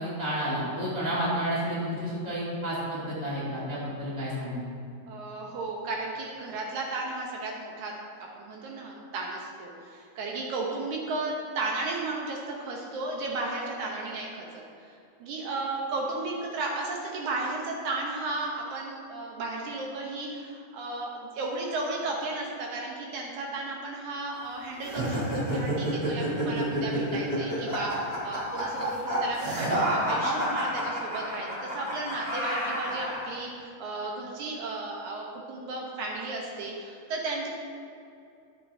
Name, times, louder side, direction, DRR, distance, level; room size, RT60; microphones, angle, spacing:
voice 1, 0.0-4.6, equal, 15° left, -8 dB, 1.1 m, -31 dB
voice 2, 5.1-37.5, right 2 dB, 70° right, -1 dB, 2.1 m, -34 dB
sound 1, 24.8-33.3, right 1 dB, 20° right, 1.4 m, -29 dB
12.0 x 8.1 x 2.7 m, 2.6 s
omnidirectional pair, 3.9 m